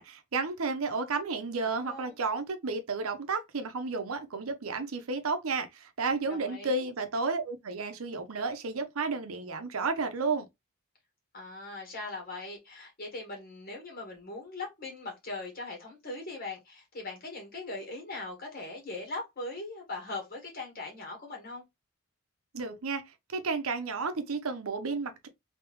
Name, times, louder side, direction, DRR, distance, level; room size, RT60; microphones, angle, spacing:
voice 1, 0.0-10.5 22.5-25.3, right 4 dB, 80° right, 0.7 m, -32 dB
voice 2, 1.7-2.1 6.3-6.8 11.3-21.6, left 2 dB, 45° left, 1.9 m, -40 dB
3.4 x 2.8 x 3.0 m
head